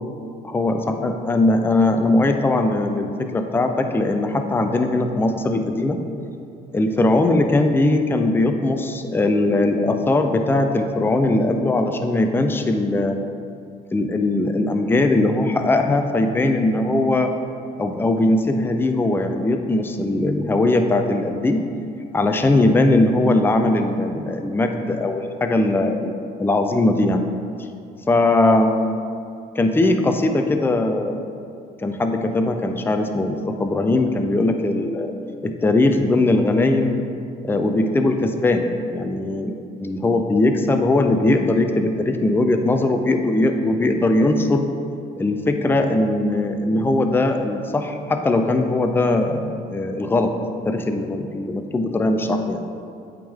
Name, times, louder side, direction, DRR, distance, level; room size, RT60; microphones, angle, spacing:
voice 1, 0.4-6.0 6.7-13.2 13.9-17.3 17.8-21.6 22.1-26.1 26.4-27.2 28.1-28.7 29.6-31.2 31.8-35.1 35.4-37.0 37.4-44.7 45.2-50.3 50.6-52.6, left 2 dB, 10° left, 5 dB, 0.4 m, -20 dB
8.5 x 3.7 x 3.5 m, 2.5 s
cardioid pair, 90°, 17 cm